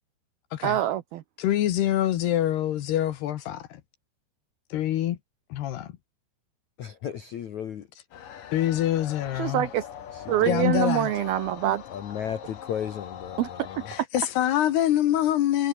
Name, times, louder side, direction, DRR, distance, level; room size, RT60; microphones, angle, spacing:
voice 1, 0.6-1.2 9.3-9.9 10.3-11.8 13.4-13.8, right 13 dB, 85° right, 2.1 m, -25 dB
voice 2, 1.4-3.8 4.7-5.2 5.5-5.9 8.5-9.7 10.5-11.1 13.9-15.7, left 12 dB, 65° left, 2.9 m, -25 dB
voice 3, 6.8-7.9 9.2-9.4 10.1-10.7 11.9-13.9, left 9 dB, 90° left, 1.6 m, -35 dB
sound 1, 8.1-14.0, left 9 dB, 50° left, 3.1 m, -42 dB
omnidirectional pair, 5.9 m